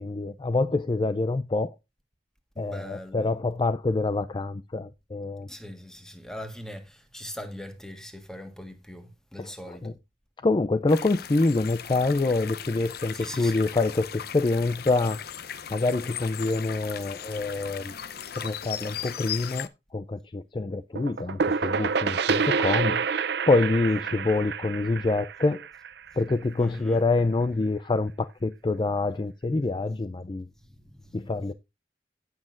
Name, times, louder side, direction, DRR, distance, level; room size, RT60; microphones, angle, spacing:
voice 1, 0.0-1.8 2.6-5.5 9.4-9.9 10.4-15.2 15.7-17.9 18.3-23.2 23.5-25.6 26.2-30.5 31.1-31.5, left 2 dB, 25° left, 0.4 m, -26 dB
voice 2, 2.5-3.3 5.5-10.0 13.1-13.7 26.6-27.0 30.6-31.2, equal, 5° left, 1.5 m, -41 dB
sound 1, 10.9-19.7, left 9 dB, 60° left, 0.7 m, -38 dB
sound 2, 21.0-26.5, right 5 dB, 65° right, 0.6 m, -28 dB
16.0 x 6.3 x 2.5 m
head